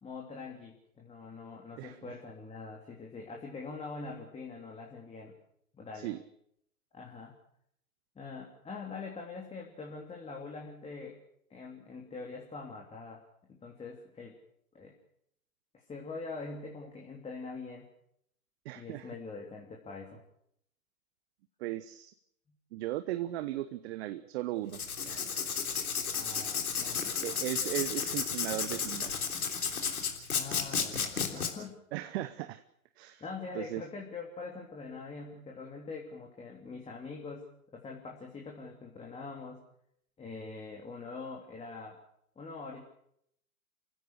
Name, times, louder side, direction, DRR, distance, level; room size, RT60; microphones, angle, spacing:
voice 1, 0.0-5.3 5.7-6.1 6.9-7.4 8.1-11.2 11.5-13.2 13.5-14.4 14.7-14.9 15.7-17.9 18.7-20.2 26.1-27.4 30.3-31.8 33.2-39.6 40.2-42.0 42.3-42.8, left 4 dB, 15° left, 0 dB, 3.2 m, -44 dB
voice 2, 1.8-2.1 5.9-6.2 18.6-19.1 21.6-22.1 22.7-24.8 25.0-25.4 27.2-29.3 31.9-32.6 33.0-33.2 33.5-33.8, right 15 dB, 45° right, 12 dB, 1.1 m, -37 dB
Writing, 24.7-31.5, left 6 dB, 75° left, 3.5 m, -33 dB
28.0 x 15.5 x 6.6 m, 0.72 s
figure-of-eight pair, 110°, 43 cm